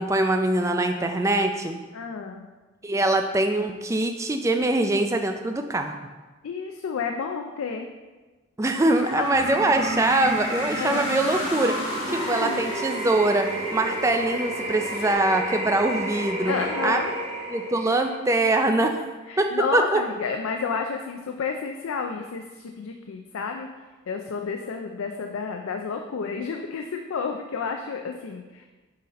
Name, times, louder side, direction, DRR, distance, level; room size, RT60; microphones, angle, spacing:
voice 1, 0.0-1.8 2.8-6.0 8.6-16.5 16.8-17.0 17.5-19.1 19.4-20.0, right 2 dB, 15° right, 6 dB, 0.3 m, -23 dB
voice 2, 1.9-2.5 6.4-7.9 9.1-9.2 10.7-11.2 12.1-12.6 16.5-17.1 19.3-23.7 24.1-28.7, left 5 dB, 85° left, 4 dB, 0.4 m, -31 dB
sound 1, 8.6-15.1, left 2 dB, 65° left, 1.4 m, -40 dB
sound 2, 9.2-18.2, right 1 dB, 35° right, 0.8 m, -31 dB
6.5 x 4.0 x 4.1 m, 1.3 s
head